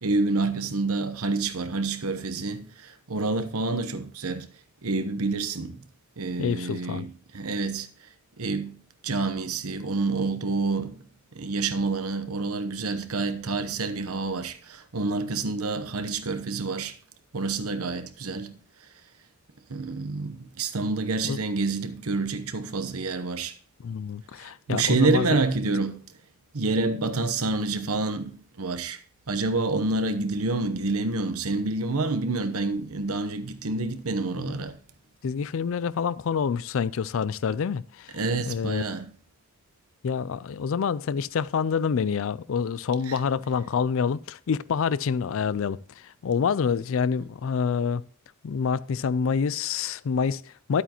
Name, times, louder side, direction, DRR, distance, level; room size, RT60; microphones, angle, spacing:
voice 1, 0.0-4.5 4.8-5.8 6.2-7.9 8.4-11.0 11.3-17.0 17.3-18.6 19.7-23.6 24.4-26.0 26.5-29.0 29.3-34.8 38.1-39.1 43.1-43.2, right 3 dB, 85° right, 1.0 m, -28 dB
voice 2, 6.4-7.1 21.2-21.4 23.8-25.3 34.4-34.6 35.2-38.8 40.0-48.0 48.4-50.8, left 6 dB, 65° left, 0.4 m, -27 dB
11.5 x 8.3 x 2.9 m
head